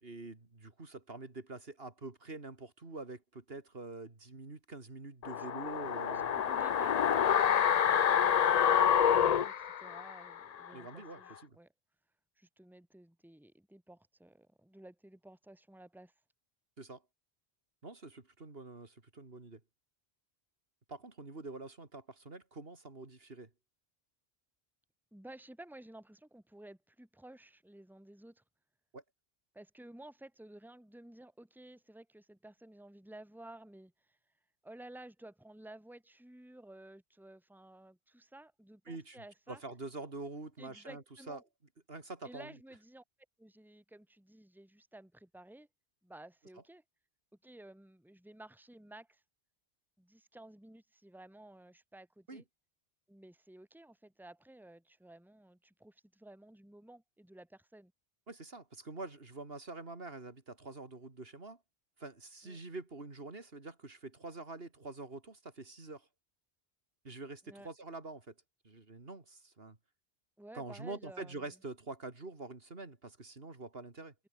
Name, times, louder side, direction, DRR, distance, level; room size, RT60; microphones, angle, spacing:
voice 1, 0.0-6.3 10.7-11.6 16.8-17.0 17.8-19.6 20.9-23.5 28.9-29.0 38.9-39.2 39.5-41.4 41.9-42.5 52.3-52.4 58.3-61.6 62.0-66.1 67.0-68.3 68.6-69.8 70.5-74.1, right 3 dB, 70° right, 3.1 m, -46 dB
sound 1, 5.2-10.4 10.7-10.8, left 8 dB, 50° left, 0.6 m, -27 dB
voice 2, 6.0-11.7 12.4-16.1 25.1-28.4 29.5-34.2 34.6-39.6 40.6-41.4 42.2-43.0 43.4-45.7 46.0-46.8 47.4-49.2 50.0-52.4 53.1-57.9 62.4-62.6 67.5-67.7 70.4-71.5, right 1 dB, ahead, 2.3 m, -54 dB
omnidirectional pair, 1.0 m